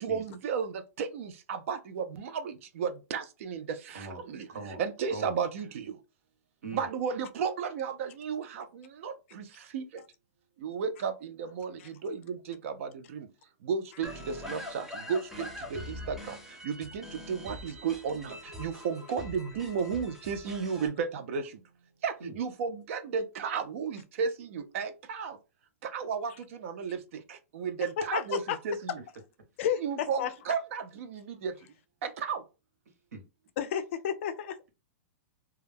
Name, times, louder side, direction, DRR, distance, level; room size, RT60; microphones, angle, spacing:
voice 1, 0.0-4.5 4.8-5.9 6.7-9.4 9.7-9.8 10.6-13.3 13.6-16.4 16.6-21.5 22.0-25.4 25.8-27.0 27.3-29.0 29.8-31.5 32.0-32.4, right 6 dB, 60° right, 0.5 m, -34 dB
voice 2, 4.5-4.8 5.1-5.4 6.6-6.9 22.2-22.4 33.1-33.2, right 3 dB, 90° right, 0.9 m, -40 dB
sound 1, 14.0-20.9, left 1 dB, 5° right, 0.6 m, -43 dB
voice 3, 27.8-28.6 29.6-30.3 33.6-34.6, left 8 dB, 55° left, 0.4 m, -32 dB
2.2 x 2.1 x 3.3 m
hypercardioid pair, 145°, 8 cm